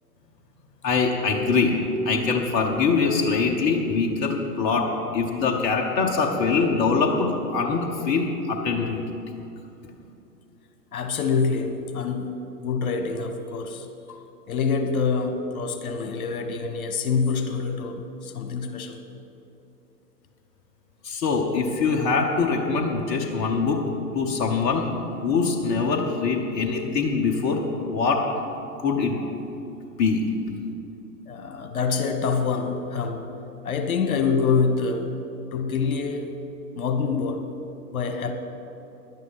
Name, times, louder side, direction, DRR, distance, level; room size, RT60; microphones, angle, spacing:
voice 1, 0.8-9.0 21.0-23.8 24.1-24.9 25.2-28.2 28.8-29.3 30.0-30.2, left 4 dB, 20° left, 0 dB, 0.8 m, -23 dB
voice 2, 10.9-19.0 24.2-24.4 26.8-26.9 31.3-33.3 33.6-35.2 35.5-36.4 36.7-37.5 37.9-38.3, left 5 dB, 60° left, 6 dB, 1.4 m, -26 dB
11.0 x 9.3 x 5.9 m, 2.8 s
figure-of-eight pair, 115°, 49 cm